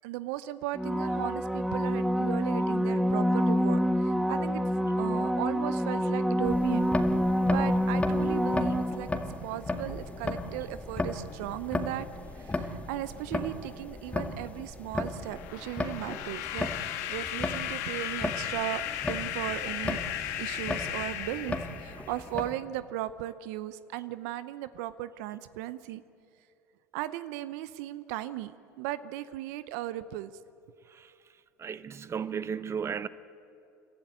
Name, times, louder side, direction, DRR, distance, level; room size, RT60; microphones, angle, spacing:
voice 1, 0.0-4.6 5.0-6.9 7.4-9.1 9.4-12.1 12.4-20.0 20.4-26.0 26.9-28.5 28.8-30.3, right 14 dB, 70° right, 0.7 m, -36 dB
sound 1, 0.7-9.4 14.7-14.8, equal, 5° right, 0.7 m, -27 dB
sound 2, 6.4-22.5, left 2 dB, 15° left, 2.0 m, -36 dB
sound 3, 15.2-22.3, left 12 dB, 75° left, 1.5 m, -36 dB
voice 2, 31.6-33.1, right 7 dB, 30° right, 0.9 m, -34 dB
29.5 x 12.5 x 8.8 m
hypercardioid pair, 85°, 9 cm